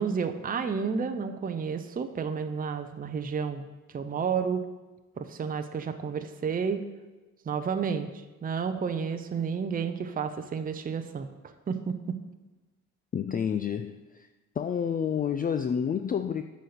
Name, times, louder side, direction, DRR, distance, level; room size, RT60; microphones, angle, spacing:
voice 1, 0.0-3.7 3.9-4.6 5.2-6.8 7.5-11.3 11.7-12.0, right 6 dB, 30° right, 8 dB, 0.6 m, -31 dB
voice 2, 13.1-14.3 14.6-16.4, left 7 dB, 30° left, 8 dB, 0.4 m, -29 dB
8.2 x 4.2 x 6.6 m, 1.2 s
cardioid pair, 90°, 30 cm